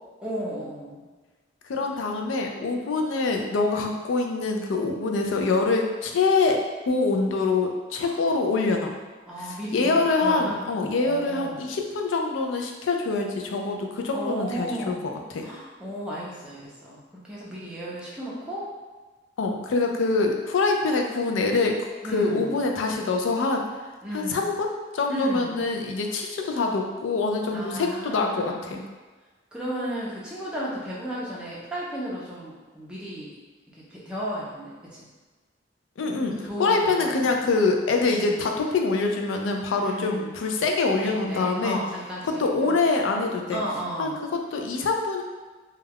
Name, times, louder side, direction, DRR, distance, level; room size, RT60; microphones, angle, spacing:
voice 1, 0.2-1.0 8.0-8.2 9.3-11.7 14.1-15.2 15.4-18.6 22.0-22.6 24.0-24.5 25.1-25.7 27.5-28.7 29.5-33.3 33.7-35.1 36.4-37.4 38.1-38.5 39.8-40.4 41.0-43.0 43.5-44.2, equal, 5° right, -7 dB, 0.5 m, -34 dB
voice 2, 1.7-6.6 6.9-8.9 9.4-15.0 15.3-15.5 19.4-21.8 22.1-23.6 24.1-28.8 36.0-41.8 42.2-43.6 44.0-45.2, left 3 dB, 80° left, 3 dB, 0.4 m, -25 dB
2.2 x 2.2 x 3.4 m, 1.3 s
head